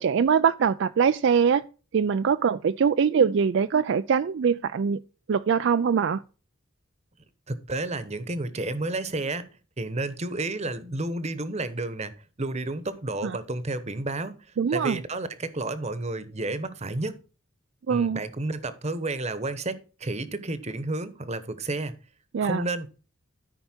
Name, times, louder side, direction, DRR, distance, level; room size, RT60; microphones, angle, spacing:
voice 1, 0.0-1.6 1.9-5.0 5.3-6.2 13.2-13.3 14.6-15.0 17.9-18.2 22.3-22.6, right 6 dB, 60° right, 0.4 m, -22 dB
voice 2, 7.5-9.5 9.8-12.1 12.4-14.3 14.7-17.2 17.9-22.0 22.4-22.9, right 2 dB, 30° right, 1.0 m, -31 dB
13.0 x 5.5 x 4.4 m
head